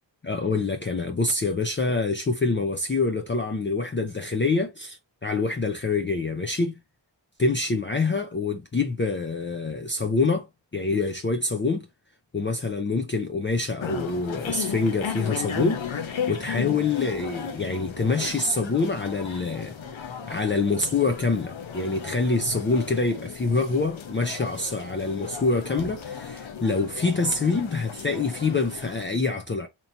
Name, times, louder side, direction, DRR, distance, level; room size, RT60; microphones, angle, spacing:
voice 1, 0.2-6.8 7.4-10.5 10.7-11.9 12.3-29.7, left 3 dB, 25° left, 0.5 m, -26 dB
sound 1, 13.8-29.0, left 7 dB, 80° left, 0.8 m, -35 dB
3.0 x 2.6 x 4.4 m
wide cardioid pair, 80°, 46 cm